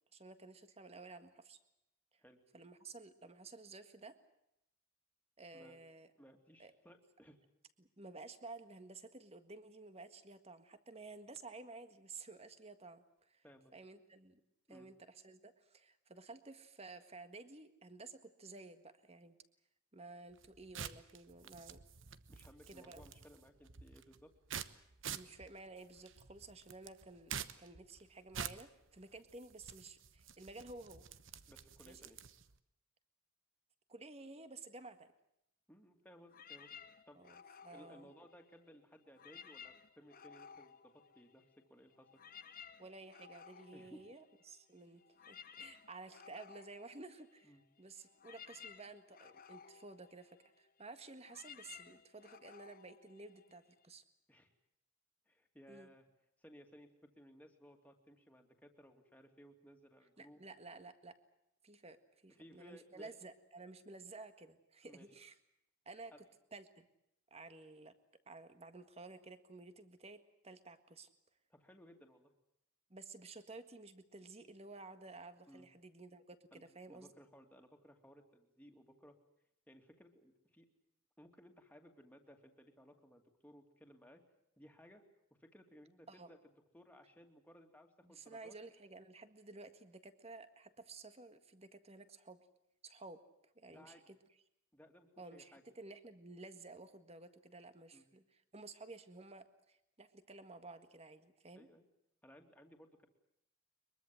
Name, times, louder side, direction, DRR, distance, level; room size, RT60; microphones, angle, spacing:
voice 1, 0.1-1.6 2.5-4.2 5.4-6.1 6.6-6.7 7.8-13.4 13.7-14.4 14.7-19.4 19.9-21.8 22.7-23.0 25.1-31.0 31.9-32.0 33.9-35.1 37.2-38.1 42.8-45.0 45.3-54.0 55.7-55.9 60.2-61.2 61.6-62.0 62.2-65.4 65.9-66.1 66.5-66.9 67.3-67.9 68.3-71.1 72.9-77.1 86.1-86.3 88.0-92.4 92.8-93.2 93.6-94.2 95.2-101.7, right 3 dB, 30° right, 10 dB, 1.7 m, -53 dB
voice 2, 6.2-7.4 13.4-13.7 14.7-14.9 22.3-24.3 31.5-32.2 35.7-36.7 37.1-37.2 37.7-41.4 41.7-42.2 43.7-44.1 47.4-47.6 54.3-54.5 55.3-56.1 56.4-60.4 62.3-63.1 64.8-65.1 66.1-66.2 71.5-72.3 75.5-75.7 76.5-79.2 79.7-80.7 81.2-84.2 84.6-85.0 85.4-86.4 86.7-88.6 93.7-94.1 94.7-95.6 97.9-98.0 101.5-101.8 102.2-103.1, equal, 5° left, 3 dB, 2.6 m, -60 dB
sound 1, 20.3-32.6, right 7 dB, 60° right, 1.1 m, -49 dB
sound 2, 36.3-38.7 39.1-41.6 41.9-53.8, left 7 dB, 45° left, 1.2 m, -57 dB
23.5 x 22.5 x 7.8 m, 0.80 s
head